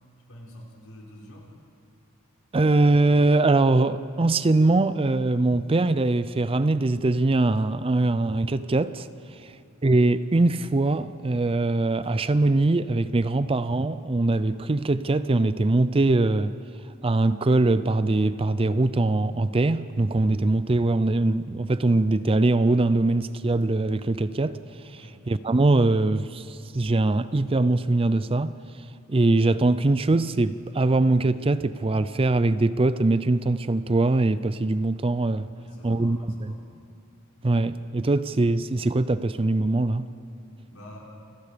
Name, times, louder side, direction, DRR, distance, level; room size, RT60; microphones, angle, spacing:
voice 1, 0.3-1.5 9.3-9.7 24.9-25.2 35.5-36.6 40.7-41.0, equal, 70° left, 5.2 m, -47 dB
voice 2, 2.5-9.1 9.4-9.5 9.8-16.5 17.0-24.6 24.8-25.0 25.3-28.5 29.1-35.5 35.8-36.5 37.4-40.0, right 2 dB, 25° right, 0.5 m, -22 dB
29.0 x 21.5 x 5.1 m
head